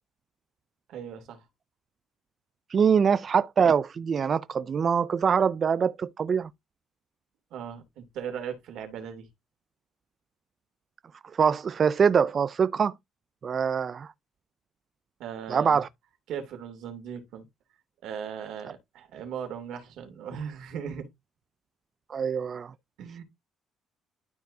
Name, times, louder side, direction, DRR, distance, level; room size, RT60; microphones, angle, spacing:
voice 1, 0.9-1.4 7.5-9.3 15.2-15.8 16.3-17.5 18.0-21.1 23.0-23.2, right 7 dB, 70° right, 2.7 m, -38 dB
voice 2, 2.7-6.5 11.3-13.0 13.4-14.1 15.5-15.9 22.1-22.7, right 6 dB, 35° right, 0.3 m, -24 dB
12.5 x 4.5 x 2.7 m
cardioid pair, 160°, 0 cm